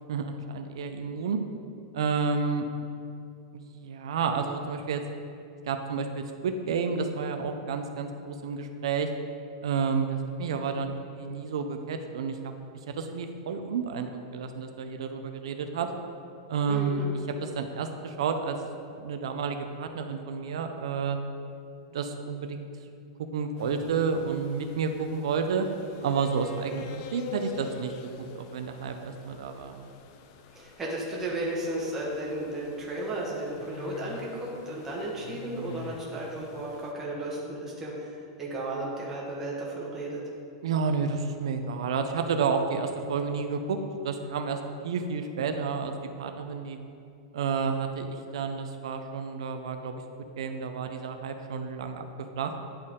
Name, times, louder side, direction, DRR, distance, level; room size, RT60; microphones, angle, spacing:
voice 1, 0.1-1.4 1.9-2.7 3.5-5.0 5.6-9.1 9.6-12.5 12.9-15.9 16.5-17.0 17.4-18.6 18.9-21.2 21.9-22.7 23.3-25.7 26.0-27.9 28.3-29.8 40.6-43.8 44.0-44.6 44.8-46.8 47.3-50.0 50.4-52.5, right 5 dB, 85° right, 6 dB, 0.5 m, -30 dB
voice 2, 16.7-17.2 30.5-40.2, right 1 dB, 15° right, -4 dB, 1.2 m, -34 dB
sound 1, 23.6-36.9, left 6 dB, 40° left, 0.4 m, -46 dB
10.0 x 4.4 x 3.6 m, 2.5 s
supercardioid pair, 170°, 3 cm